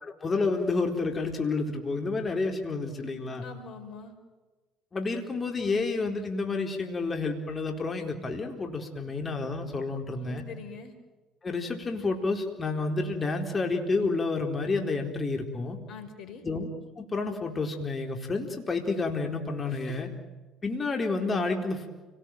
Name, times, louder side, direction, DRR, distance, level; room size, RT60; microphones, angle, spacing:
voice 1, 0.0-3.5 4.9-10.4 11.4-15.8 16.4-16.7 17.0-20.1 20.6-21.9, left 3 dB, 30° left, 3 dB, 4.1 m, -30 dB
voice 2, 3.4-4.1 10.2-10.9 15.9-16.4 19.7-20.0, left 4 dB, 60° left, 8 dB, 4.9 m, -44 dB
30.0 x 19.5 x 9.2 m, 1.3 s
hypercardioid pair, 65°, 0 cm